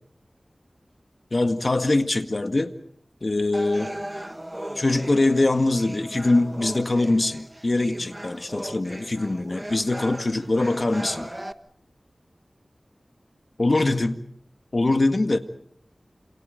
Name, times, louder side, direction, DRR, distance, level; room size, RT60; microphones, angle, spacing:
voice 1, 1.3-2.7 3.2-4.0 4.8-11.3 13.6-14.2 14.7-15.4, left 2 dB, 50° left, 1.9 m, -23 dB
sound 1, 3.5-11.5, right 1 dB, 15° right, 1.2 m, -37 dB
28.0 x 27.5 x 5.2 m
wide cardioid pair, 70°, 0 cm